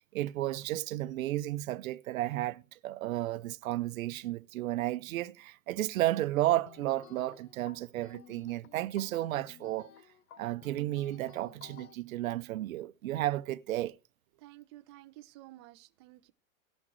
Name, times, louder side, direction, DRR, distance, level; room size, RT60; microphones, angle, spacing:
voice 1, 0.1-9.9 10.4-14.0, right 15 dB, 90° right, 0.7 m, -33 dB
sound 1, 6.7-11.9, left 8 dB, 85° left, 0.9 m, -55 dB
voice 2, 14.3-16.3, right 17 dB, 20° right, 0.4 m, -53 dB
18.0 x 6.0 x 3.1 m
supercardioid pair, 165°, 40 cm